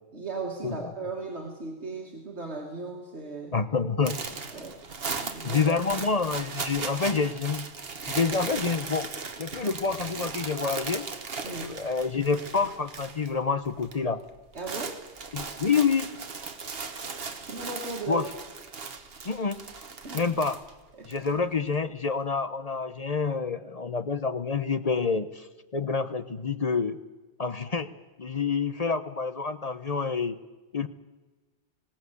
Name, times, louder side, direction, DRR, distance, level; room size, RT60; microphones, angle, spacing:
voice 1, 0.1-3.6 4.5-4.8 5.2-5.8 11.4-11.8 14.5-15.0 17.4-18.3 20.0-20.2 20.9-21.1, right 3 dB, 80° right, 0 dB, 2.4 m, -37 dB
voice 2, 3.5-4.2 5.4-7.7 8.1-9.1 9.4-11.1 11.5-14.2 15.3-16.1 18.1-18.3 19.2-19.6 20.1-20.6 21.1-25.5 25.7-27.0 27.4-27.9 28.2-30.4 30.7-30.9, left 5 dB, 40° left, 12 dB, 0.8 m, -27 dB
sound 1, 4.0-13.3 13.6-14.0 14.3-21.3, right 4 dB, 60° right, 1.6 m, -37 dB
20.0 x 17.5 x 8.3 m, 1.2 s
omnidirectional pair, 1.1 m